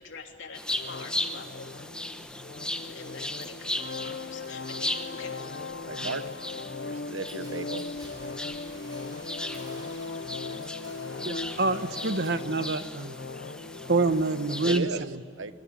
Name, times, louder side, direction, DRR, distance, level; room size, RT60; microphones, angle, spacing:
voice 1, 0.0-1.7 2.9-5.5, left 4 dB, 70° left, 3 dB, 3.2 m, -45 dB
sound 1, 0.5-14.8, left 1 dB, 5° left, 1.2 m, -37 dB
sound 2, 0.7-14.7, left 4 dB, 55° left, 0.6 m, -39 dB
voice 2, 5.9-6.2 6.7-7.8 14.6-15.1 15.4-15.5, right 3 dB, 85° right, 12 dB, 1.2 m, -34 dB
sound 3, 7.3-12.5 12.8-13.5, right 2 dB, 20° right, 5.9 m, -52 dB
voice 3, 11.2-13.1 13.9-15.2, right 3 dB, 55° right, 11 dB, 1.1 m, -27 dB
25.0 x 23.5 x 9.0 m, 2.2 s
head